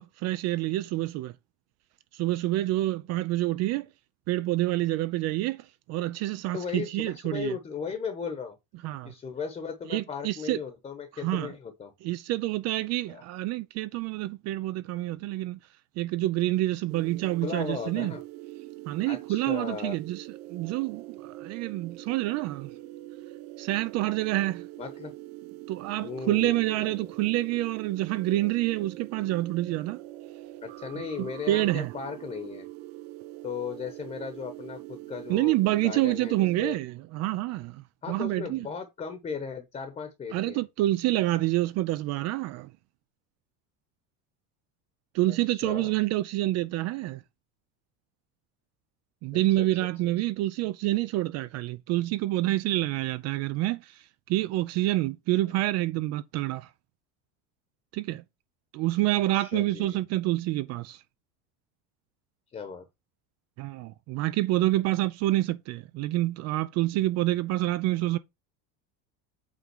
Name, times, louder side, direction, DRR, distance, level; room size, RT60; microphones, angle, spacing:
voice 1, 0.0-1.3 2.1-3.9 4.3-7.6 8.8-9.1 9.9-10.6 11.1-11.5 12.0-15.6 16.0-18.1 18.9-22.7 23.6-24.6 25.7-30.0 31.2-31.9 35.3-38.7 40.3-42.7 45.1-47.2 49.2-56.7 57.9-58.2 58.7-61.0 63.6-68.2, right 16 dB, 45° right, 0.5 m, -28 dB
voice 2, 6.5-8.6 9.0-11.9 13.1-13.2 17.4-18.2 19.1-20.0 24.8-25.1 26.0-27.1 30.6-32.7 33.4-36.8 38.0-40.6 45.3-45.9 49.3-49.7 59.3-60.0 62.5-62.9, left 6 dB, 20° left, 1.1 m, -37 dB
sound 1, 16.9-36.6, right 17 dB, 90° right, 0.8 m, -43 dB
8.4 x 3.7 x 6.1 m
cardioid pair, 175°, 38 cm